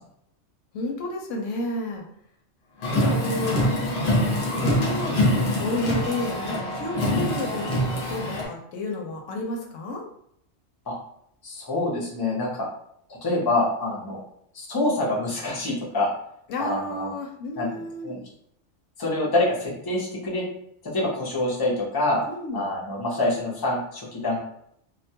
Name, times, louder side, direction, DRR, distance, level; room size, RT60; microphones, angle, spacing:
voice 1, 0.7-2.0 3.0-3.7 4.6-10.0 16.5-18.2 22.3-22.7, left 2 dB, 80° left, 1 dB, 0.9 m, -31 dB
Car, 2.8-8.5, equal, 50° left, 0.8 m, -24 dB
voice 2, 11.4-12.7 13.1-14.2 14.5-16.1 16.6-17.1 17.6-18.2 19.0-20.5 20.8-22.2 22.5-24.4, left 2 dB, 25° left, -5 dB, 0.5 m, -26 dB
2.3 x 2.2 x 2.7 m, 0.71 s
omnidirectional pair, 1.3 m